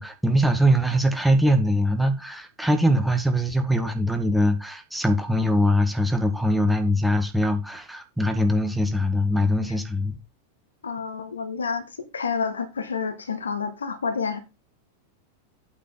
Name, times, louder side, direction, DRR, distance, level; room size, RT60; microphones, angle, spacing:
voice 1, 0.0-10.1, equal, ahead, 1.7 m, -22 dB
voice 2, 10.8-14.4, left 5 dB, 70° left, 1.7 m, -29 dB
8.5 x 5.9 x 5.6 m
figure-of-eight pair, 90°, 0 cm